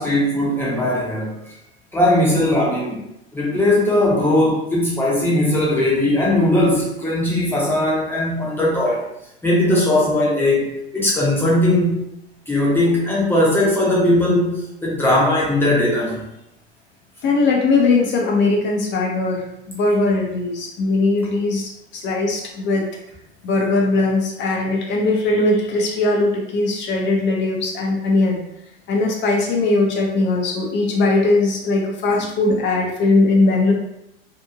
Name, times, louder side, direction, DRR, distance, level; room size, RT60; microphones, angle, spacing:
voice 1, 0.0-1.4 1.9-3.0 3.3-9.0 9.4-12.0 12.5-16.2, left 1 dB, 5° left, -5 dB, 0.9 m, -19 dB
voice 2, 17.2-22.8 23.4-28.4 28.9-33.7, left 3 dB, 35° left, 0 dB, 0.8 m, -19 dB
2.8 x 2.6 x 2.4 m, 0.81 s
hypercardioid pair, 100°, 32 cm